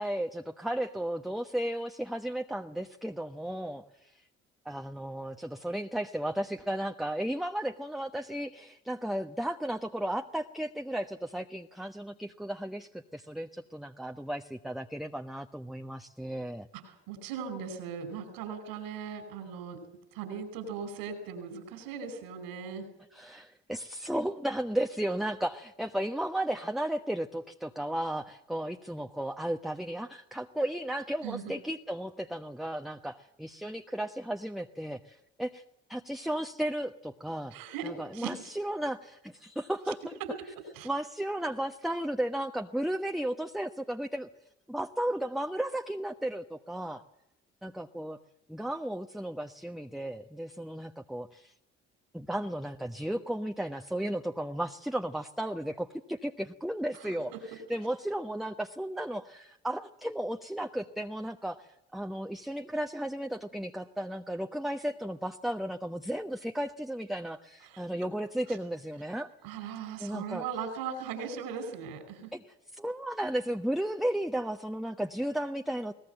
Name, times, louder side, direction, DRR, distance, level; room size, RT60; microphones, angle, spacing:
voice 1, 0.0-4.2 4.6-16.7 23.1-35.6 35.9-37.5 37.8-40.2 40.8-44.3 44.7-47.0 47.6-48.2 48.5-51.5 52.1-69.3 70.0-70.4 72.3-75.9, right 1 dB, ahead, 4 dB, 1.2 m, -34 dB
voice 2, 16.7-19.8 20.1-22.9 31.2-31.5 37.5-38.5 40.2-40.5 40.7-40.9 57.3-57.6 67.6-67.8 69.4-72.3, right 6 dB, 80° right, 9 dB, 5.1 m, -39 dB
22.0 x 19.0 x 8.0 m, 0.81 s
hypercardioid pair, 50°, 35 cm